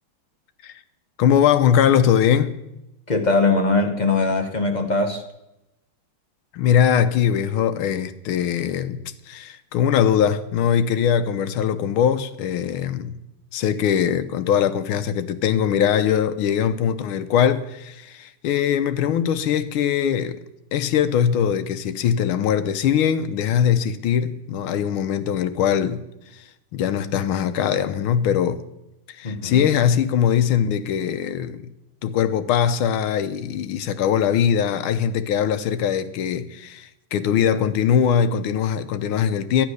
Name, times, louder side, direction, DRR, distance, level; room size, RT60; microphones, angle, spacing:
voice 1, 1.2-2.6 6.5-13.2 13.5-20.4 20.7-26.0 26.3-26.4 26.7-28.6 29.1-31.7 32.0-39.7, left 8 dB, 85° left, 1.6 m, -21 dB
voice 2, 3.1-5.2 29.2-29.7, left 3 dB, 30° left, 0.8 m, -21 dB
12.0 x 10.0 x 6.5 m
omnidirectional pair, 2.3 m